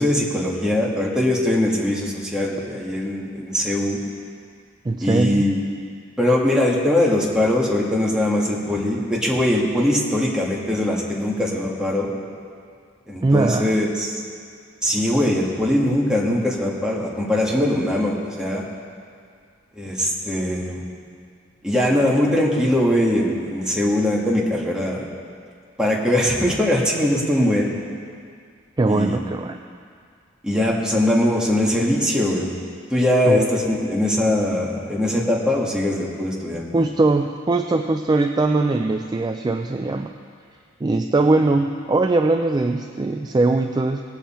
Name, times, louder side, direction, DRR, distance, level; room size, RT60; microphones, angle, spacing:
voice 1, 0.0-4.0 5.0-5.6 6.2-12.1 13.1-14.2 14.8-18.7 19.8-20.8 21.6-25.1 25.8-27.7 28.9-29.2 30.4-32.5 32.9-36.7, left 1 dB, 5° right, -4 dB, 1.6 m, -21 dB
voice 2, 4.8-5.5 13.2-13.8 28.8-29.6 33.3-33.5 36.7-40.1 40.8-44.0, right 2 dB, 20° right, 5 dB, 0.3 m, -20 dB
18.0 x 7.3 x 4.3 m, 2.2 s
head